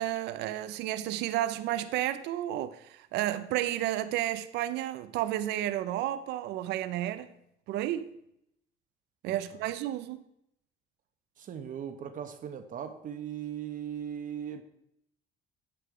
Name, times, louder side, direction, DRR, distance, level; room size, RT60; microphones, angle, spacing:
voice 1, 0.0-7.3 7.7-8.1 9.2-10.2, right 13 dB, 85° right, 0.6 m, -32 dB
voice 2, 9.3-9.6 11.4-14.6, right 9 dB, 50° right, 1.1 m, -39 dB
10.0 x 7.9 x 4.9 m
cardioid pair, 110°, 17 cm